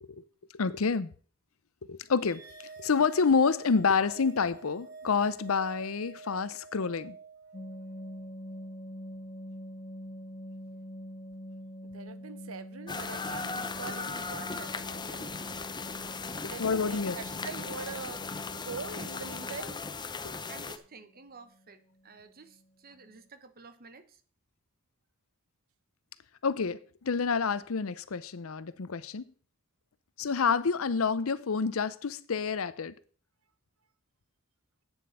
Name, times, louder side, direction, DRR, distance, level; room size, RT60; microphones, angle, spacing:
voice 1, 0.5-1.1 1.9-2.4 2.8-7.2 16.4-17.2 20.2-20.3 26.4-29.3 30.2-32.9, left 5 dB, 80° left, 0.7 m, -28 dB
sound 1, 2.2-8.7, right 4 dB, 15° right, 3.9 m, -49 dB
sound 2, 7.5-19.6 21.5-21.7 22.0-22.1 22.5-22.6 22.9-23.2, equal, 45° left, 1.8 m, -45 dB
voice 2, 11.9-15.3 16.5-18.2 18.6-19.8, right 5 dB, 80° right, 1.0 m, -42 dB
sound 3, 12.9-20.8, left 4 dB, 20° left, 0.8 m, -38 dB
voice 3, 20.5-24.2, right 4 dB, 45° right, 1.2 m, -52 dB
8.9 x 7.7 x 6.6 m
head